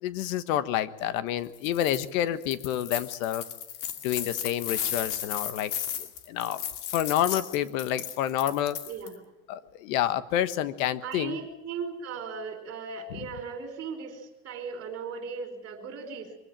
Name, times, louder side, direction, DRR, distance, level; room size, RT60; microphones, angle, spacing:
voice 1, 0.0-3.4 4.0-5.7 6.0-6.6 6.9-8.8 9.5-11.4 13.1-13.3, left 11 dB, 75° left, 13 dB, 1.4 m, -29 dB
sound 1, 1.5-2.1 2.4-9.1, left 9 dB, 50° left, 2.4 m, -35 dB
voice 2, 8.9-9.2 11.0-16.3, right 5 dB, 35° right, 7 dB, 4.9 m, -37 dB
24.0 x 16.0 x 9.1 m, 0.92 s
cardioid pair, 160°, 41 cm